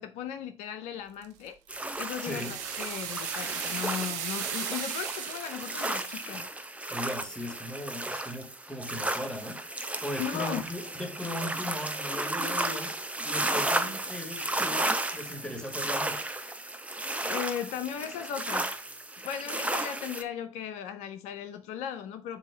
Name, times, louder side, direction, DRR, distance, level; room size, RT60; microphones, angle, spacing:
voice 1, 0.0-1.6 2.0-6.5 10.2-10.6 17.2-18.8 19.2-22.4, left 9 dB, 80° left, 0.5 m, -37 dB
sound 1, 1.2-6.4, right 10 dB, 80° right, 0.6 m, -37 dB
sound 2, 1.7-20.2, right 2 dB, 10° right, 0.8 m, -34 dB
voice 2, 2.2-2.6 6.9-9.6 10.0-13.0 13.2-16.3, left 1 dB, 5° left, 2.1 m, -38 dB
6.9 x 2.8 x 4.9 m
hypercardioid pair, 50°, 12 cm